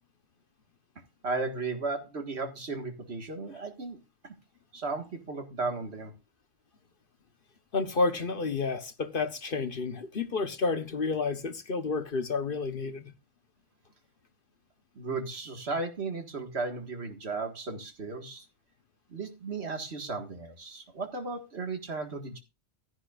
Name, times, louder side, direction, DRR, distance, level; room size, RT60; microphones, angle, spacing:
voice 1, 1.2-4.0 4.2-4.4 4.7-6.1 15.0-18.5 19.1-22.4, right 3 dB, 65° right, 2.0 m, -35 dB
voice 2, 7.7-13.1, left 4 dB, 50° left, 1.1 m, -30 dB
15.0 x 10.5 x 2.5 m
omnidirectional pair, 1.2 m